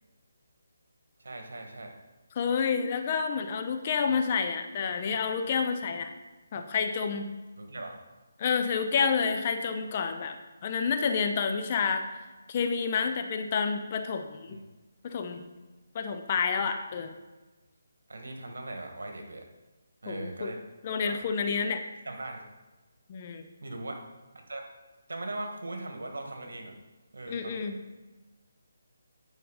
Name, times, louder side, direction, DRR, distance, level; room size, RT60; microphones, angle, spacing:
voice 1, 1.2-1.9 7.6-8.0 14.5-14.6 18.1-19.4 20.0-20.6 21.0-21.1 22.0-22.4 23.6-24.0 24.3-24.6 25.1-26.7 27.1-27.7, right 2 dB, 75° right, 3 dB, 1.6 m, -39 dB
voice 2, 2.4-6.1 6.5-7.3 8.4-10.4 10.6-12.0 12.5-14.6 15.0-15.4 15.9-17.1 20.1-20.5 20.8-21.8 23.1-23.4 27.3-27.7, left 6 dB, 35° left, 7 dB, 0.7 m, -29 dB
9.3 x 5.4 x 4.0 m, 1.2 s
figure-of-eight pair, 160°, 0 cm